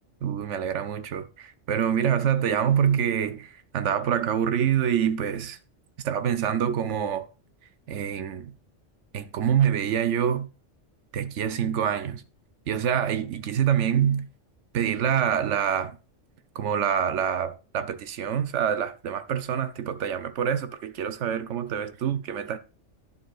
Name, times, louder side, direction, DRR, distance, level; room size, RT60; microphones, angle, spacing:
voice 1, 0.2-5.6 6.0-7.3 7.9-8.5 9.1-10.5 11.1-12.2 12.7-14.3 14.7-16.0 16.5-22.6, right 8 dB, 70° right, 1.0 m, -26 dB
10.5 x 6.8 x 2.4 m
omnidirectional pair, 1.3 m